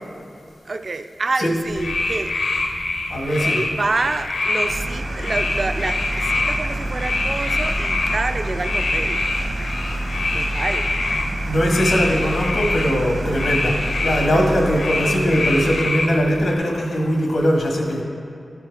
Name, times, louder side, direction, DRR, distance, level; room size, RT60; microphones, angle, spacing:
voice 1, 0.7-2.8 3.3-9.2 10.3-10.9, right 3 dB, 45° right, 8 dB, 0.3 m, -27 dB
sound 1, 1.7-16.5, left 2 dB, 70° left, 0.7 m, -25 dB
voice 2, 3.1-3.6 11.4-18.0, equal, 85° left, -1 dB, 1.5 m, -20 dB
sound 2, 4.6-15.8, right 1 dB, 65° right, 0.9 m, -28 dB
12.0 x 4.6 x 4.7 m, 2.6 s
wide cardioid pair, 135°, 0 cm